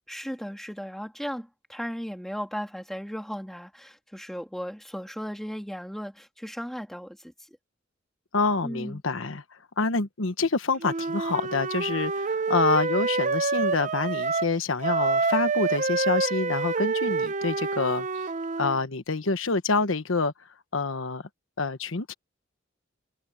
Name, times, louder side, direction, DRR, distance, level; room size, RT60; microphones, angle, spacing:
voice 1, 0.1-7.3 8.6-9.0, equal, ahead, 2.9 m, -36 dB
voice 2, 8.3-9.4 9.8-18.1 18.6-20.3 20.7-21.2 21.6-22.1, left 4 dB, 85° left, 1.2 m, -27 dB
Wind instrument woodwind instrument, 10.8-14.5 14.8-18.8, right 4 dB, 40° right, 0.6 m, -27 dB
open air
head